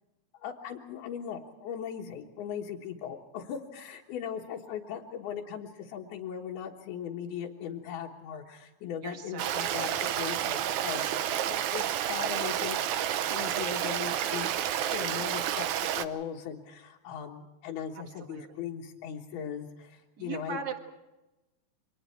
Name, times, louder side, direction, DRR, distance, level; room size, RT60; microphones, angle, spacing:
voice 1, 0.3-12.8 13.3-14.5 14.9-15.6 15.9-20.6, left 8 dB, 90° left, -3 dB, 3.4 m, -39 dB
voice 2, 9.0-9.8 18.2-18.6 20.2-20.8, right 5 dB, 40° right, 5 dB, 1.5 m, -39 dB
Stream, 9.4-16.1, right 11 dB, 70° right, 1.9 m, -30 dB
29.5 x 25.0 x 4.6 m, 1.0 s
omnidirectional pair, 4.3 m